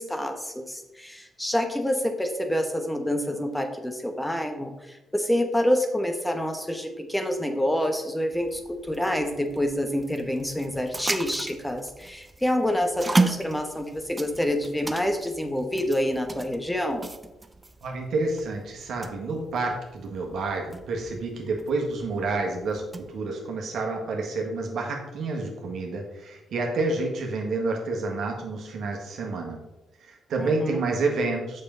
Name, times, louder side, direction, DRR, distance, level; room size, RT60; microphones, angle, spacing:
voice 1, 0.0-17.1 30.4-30.8, equal, 10° left, 5 dB, 1.2 m, -27 dB
sound 1, 8.3-23.2, right 3 dB, 20° right, 0.7 m, -34 dB
voice 2, 17.8-22.8 23.1-29.6 30.0-31.6, right 3 dB, 65° right, 1 dB, 1.6 m, -29 dB
6.9 x 6.4 x 3.9 m, 1.0 s
hypercardioid pair, 45°, 0 cm